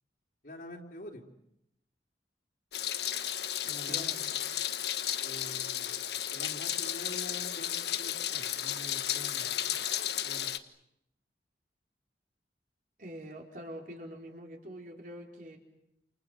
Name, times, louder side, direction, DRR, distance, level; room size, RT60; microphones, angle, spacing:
voice 1, 0.4-1.3 3.6-4.1 5.2-6.0 6.3-9.8 10.2-10.6, left 1 dB, 55° left, 0 dB, 3.8 m, -46 dB
Meow, 2.7-10.6, left 11 dB, 70° left, 1.3 m, -33 dB
voice 2, 3.6-4.4 13.0-15.6, equal, 50° right, 1 dB, 4.4 m, -45 dB
29.0 x 28.5 x 6.5 m, 0.79 s
head